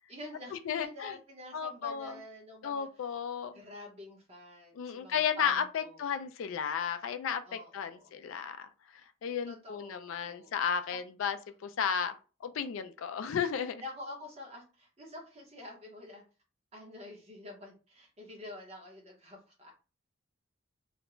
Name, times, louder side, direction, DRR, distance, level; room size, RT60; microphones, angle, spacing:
voice 1, 0.1-3.2 3.5-6.0 7.4-8.1 9.5-10.5 10.9-11.0 13.8-16.2 16.7-19.7, left 2 dB, 30° right, 0.8 m, -47 dB
voice 2, 0.7-1.1 1.5-2.1 2.6-3.5 4.8-8.7 9.2-11.4 11.6-12.1 12.4-13.8, left 7 dB, 70° left, 0.3 m, -33 dB
2.4 x 2.1 x 3.0 m
head